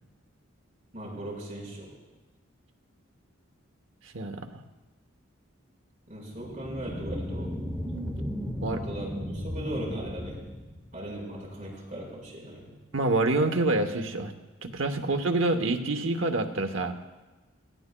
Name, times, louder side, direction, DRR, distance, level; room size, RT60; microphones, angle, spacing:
voice 1, 0.9-1.9 6.1-7.6 8.6-10.4 10.9-12.7, right 1 dB, 40° right, -4 dB, 4.7 m, -38 dB
voice 2, 4.1-4.5 8.1-8.3 8.6-8.8 12.9-14.3 14.6-16.9, right 2 dB, 70° right, 6 dB, 1.0 m, -27 dB
sound 1, 6.3-11.3, equal, 5° left, 0.9 m, -35 dB
18.0 x 15.0 x 2.3 m, 1.2 s
head